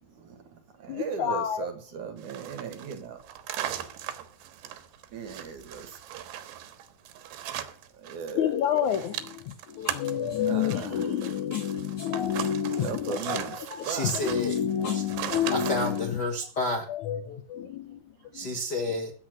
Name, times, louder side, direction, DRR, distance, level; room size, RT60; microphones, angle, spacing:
voice 1, 0.0-3.2 5.1-6.0 7.9-8.6 10.5-11.1 12.8-14.1 17.3-17.4 17.7-17.8 18.2-18.6, right 6 dB, 55° right, 8 dB, 2.6 m, -38 dB
voice 2, 0.9-1.7 8.3-16.2 16.9-18.5, left 9 dB, 75° left, 10 dB, 1.7 m, -29 dB
sound 1, 2.2-8.3 8.6-16.0, right 11 dB, 85° right, 3.4 m, -38 dB
voice 3, 13.8-14.5 14.9-15.0 15.5-16.8 18.3-19.1, left 1 dB, 50° left, 3 dB, 1.2 m, -30 dB
14.5 x 8.7 x 6.5 m, 0.42 s
omnidirectional pair, 4.8 m